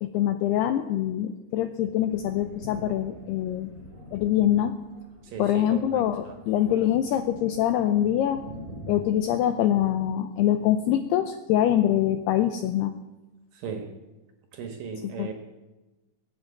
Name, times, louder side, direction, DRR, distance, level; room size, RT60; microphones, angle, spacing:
voice 1, 0.0-3.7 4.1-4.7 5.4-8.4 8.9-12.9 15.2-15.3, left 11 dB, 85° left, 9 dB, 2.3 m, -24 dB
Thunder, 2.1-9.3, equal, 10° left, 4.7 m, -45 dB
voice 2, 5.2-6.4 13.5-13.9 14.5-15.3, right 6 dB, 65° right, 5 dB, 2.5 m, -37 dB
21.5 x 7.9 x 8.6 m, 1.1 s
omnidirectional pair, 5.4 m